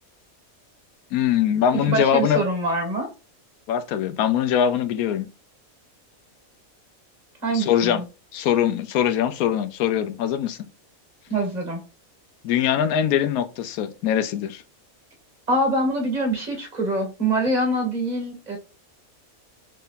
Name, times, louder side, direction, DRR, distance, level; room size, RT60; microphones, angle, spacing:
voice 1, 1.1-2.4 3.7-5.3 7.5-8.0 8.3-10.6 12.4-14.6, left 9 dB, 85° left, 1.1 m, -22 dB
voice 2, 1.9-3.1 7.4-8.0 11.3-11.8 15.5-18.6, right 1 dB, 30° right, 1.6 m, -24 dB
3.7 x 3.3 x 2.5 m
omnidirectional pair, 1.5 m